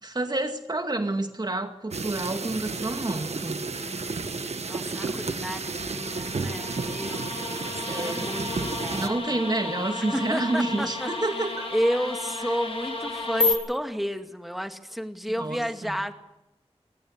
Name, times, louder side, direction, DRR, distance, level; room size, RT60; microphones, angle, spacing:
voice 1, 0.0-3.7 7.9-8.3 8.9-11.7 12.4-12.5 15.4-16.0, right 2 dB, 40° right, 2.1 m, -29 dB
sound 1, 1.9-9.1, right 4 dB, 85° right, 1.5 m, -32 dB
voice 2, 3.8-4.3 4.7-9.4 10.1-11.1 11.7-16.1, equal, ahead, 2.1 m, -32 dB
sound 2, 5.5-13.5, left 3 dB, 65° left, 4.4 m, -32 dB
22.5 x 18.5 x 7.5 m
wide cardioid pair, 70°, 11 cm